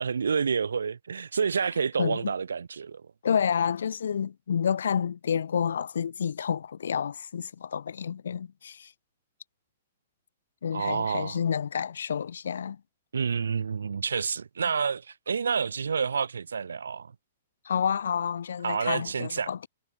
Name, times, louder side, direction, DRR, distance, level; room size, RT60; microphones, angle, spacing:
voice 1, 0.0-3.0 10.7-11.4 13.1-17.1 18.6-19.5, right 6 dB, 85° right, 4.0 m, -29 dB
voice 2, 2.0-2.3 3.2-8.9 10.6-12.8 17.6-19.7, left 7 dB, 80° left, 2.2 m, -29 dB
hypercardioid pair, 130°, 0 cm